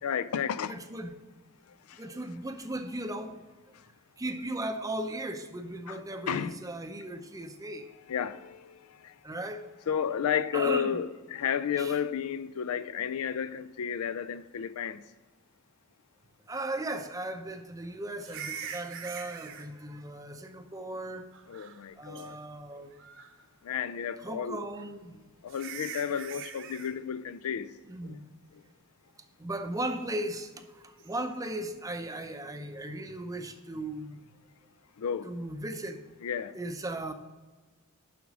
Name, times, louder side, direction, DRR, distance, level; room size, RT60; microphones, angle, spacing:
voice 1, 0.0-0.8 1.9-2.1 3.7-3.8 5.9-6.0 6.3-6.6 8.1-9.2 9.9-15.0 21.5-22.4 23.6-24.6 25.4-27.8 28.0-28.2 28.5-28.6 35.0-35.3 36.2-36.6, left 8 dB, 80° left, 0.4 m, -32 dB
voice 2, 0.7-1.1 2.0-3.4 4.2-7.9 9.2-9.6 10.5-11.0 11.8-12.0 16.5-21.2 22.0-22.9 24.2-25.3 27.9-28.2 29.4-34.2 35.2-36.0 36.5-37.1, right 1 dB, 15° right, 0.6 m, -37 dB
sound 1, 18.2-19.7 21.3-21.9 22.2-22.3 22.9-23.4 24.8-24.9 25.5-26.9 31.0-31.2, right 7 dB, 60° right, 0.9 m, -42 dB
7.2 x 6.0 x 6.1 m
head